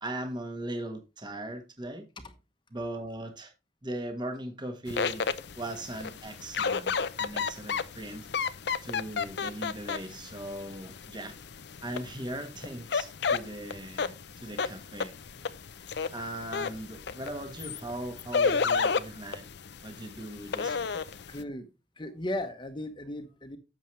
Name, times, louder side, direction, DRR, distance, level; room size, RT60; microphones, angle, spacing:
voice 1, 0.0-2.1 2.7-3.5 3.8-5.3 5.6-8.3 8.8-11.3 11.8-15.1 16.1-19.4 19.8-21.0, right 1 dB, 25° right, 1.4 m, -39 dB
sound 1, 4.9-21.4, left 5 dB, 65° left, 0.6 m, -33 dB
voice 2, 21.3-21.7 22.0-23.6, left 1 dB, 25° left, 1.1 m, -36 dB
11.5 x 7.3 x 3.2 m
head